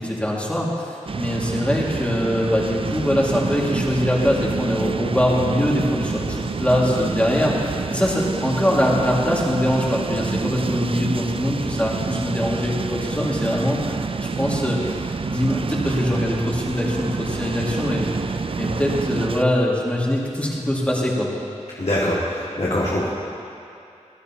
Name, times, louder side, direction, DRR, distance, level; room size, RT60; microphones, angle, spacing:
voice 1, 0.0-21.3, equal, 10° left, -4 dB, 2.0 m, -23 dB
sound 1, 1.1-19.4, right 4 dB, 45° right, 0.3 m, -28 dB
voice 2, 21.8-23.1, left 1 dB, 60° left, -8 dB, 1.9 m, -23 dB
19.5 x 12.0 x 2.9 m, 2.6 s
wide cardioid pair, 65°, 12 cm